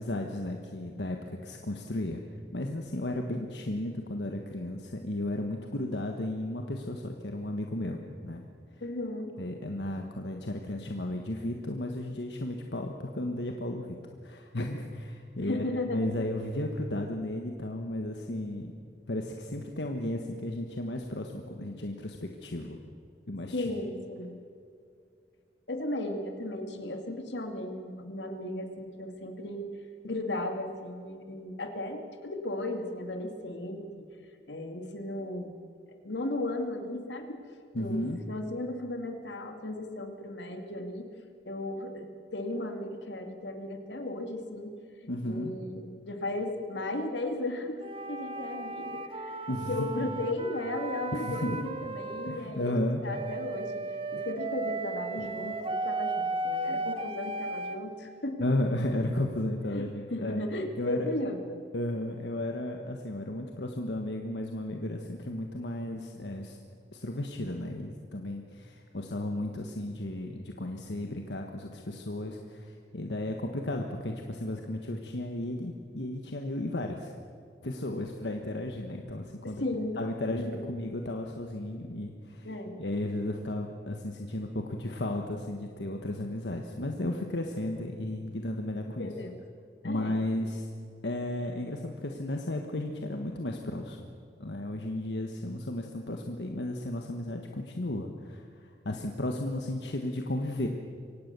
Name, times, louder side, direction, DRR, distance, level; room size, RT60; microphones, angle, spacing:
voice 1, 0.0-2.2 2.5-8.5 9.4-14.0 14.2-15.6 15.9-18.7 19.1-22.8 23.3-23.6 37.7-38.2 45.1-45.6 49.5-49.9 51.1-51.6 52.2-53.0 54.2-54.3 58.4-60.5 60.8-61.1 61.7-66.6 66.9-77.1 77.6-79.6 80.0-82.5 82.8-89.1 89.8-90.6 91.0-94.1 94.4-100.7, left 1 dB, 75° left, 3 dB, 1.4 m, -34 dB
voice 2, 8.8-9.3 15.4-16.0 23.5-24.4 25.7-29.7 30.0-34.1 34.5-35.5 36.0-37.4 37.8-38.0 38.3-41.1 41.5-44.7 45.2-47.8 48.1-49.4 49.7-53.8 54.1-58.5 59.7-61.6 79.4-80.7 82.4-82.8 88.9-89.4 89.8-90.4, left 1 dB, 90° left, 5 dB, 2.4 m, -35 dB
sound 1, 47.8-52.4 53.1-57.8, right 2 dB, 30° right, 1.3 m, -35 dB
24.0 x 17.5 x 6.9 m, 2.3 s
head